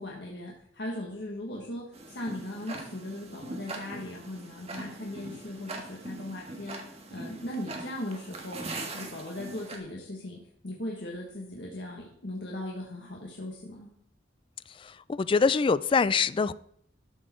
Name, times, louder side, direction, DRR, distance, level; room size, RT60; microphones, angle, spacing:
voice 1, 0.0-13.9, left 1 dB, 70° left, 1.5 m, -38 dB
Tick-tock, 1.9-9.8, right 2 dB, 35° right, 1.6 m, -41 dB
voice 2, 14.8-16.5, left 5 dB, 30° left, 0.3 m, -24 dB
12.5 x 6.5 x 4.4 m
head